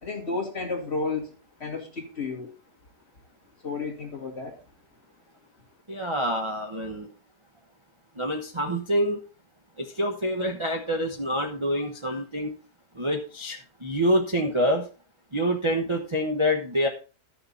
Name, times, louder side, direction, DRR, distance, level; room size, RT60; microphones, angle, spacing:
voice 1, 0.0-2.5 3.6-4.6, left 4 dB, 35° left, 2 dB, 2.3 m, -32 dB
voice 2, 5.9-7.1 8.2-9.2 9.8-12.5 12.9-14.9 15.3-16.9, equal, 20° right, 1 dB, 0.9 m, -26 dB
12.5 x 6.8 x 4.1 m, 0.35 s
omnidirectional pair, 1.9 m